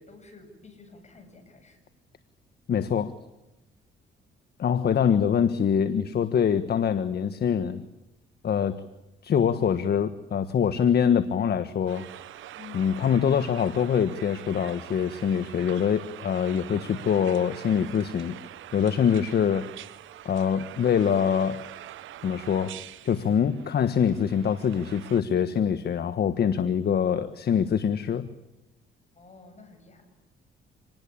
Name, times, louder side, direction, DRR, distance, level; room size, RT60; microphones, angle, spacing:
voice 1, 0.0-1.9 12.6-12.9 19.1-19.3 29.1-30.1, left 4 dB, 35° left, 6 dB, 8.0 m, -50 dB
voice 2, 2.7-3.1 4.6-7.8 8.4-8.8 9.2-12.0 12.7-18.4 18.7-19.6 20.2-21.6 22.2-22.8 23.0-28.3, left 7 dB, 55° left, 11 dB, 1.4 m, -24 dB
sound 1, 11.9-25.2, right 13 dB, 80° right, 1.1 m, -44 dB
27.0 x 20.0 x 8.5 m, 0.96 s
cardioid pair, 90°, 20 cm